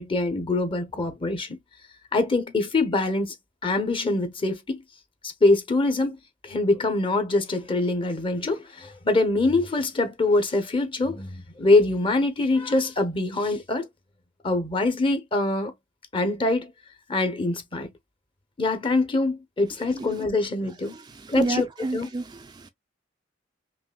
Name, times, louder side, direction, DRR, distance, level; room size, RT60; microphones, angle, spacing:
voice 1, 0.0-1.6 2.1-3.3 3.6-4.8 5.2-6.2 6.4-13.9 14.4-15.7 16.1-16.7 17.1-17.9 18.6-20.9 21.3-22.1, left 2 dB, 30° left, 0.8 m, -24 dB
voice 2, 21.4-22.2 22.5-22.7, right 2 dB, 20° right, 0.3 m, -28 dB
5.4 x 2.6 x 2.2 m
head